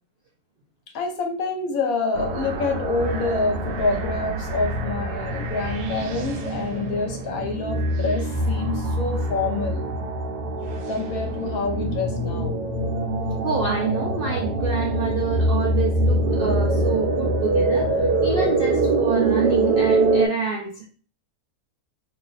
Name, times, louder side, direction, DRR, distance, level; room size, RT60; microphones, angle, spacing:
voice 1, 0.9-9.9 10.9-12.6, left 3 dB, 70° left, 4 dB, 1.2 m, -27 dB
sound 1, 2.1-20.3, right 2 dB, 80° right, 1.2 m, -24 dB
voice 2, 13.4-20.9, right 5 dB, 65° right, -1 dB, 0.5 m, -27 dB
2.9 x 2.5 x 3.9 m, 0.40 s
omnidirectional pair, 1.6 m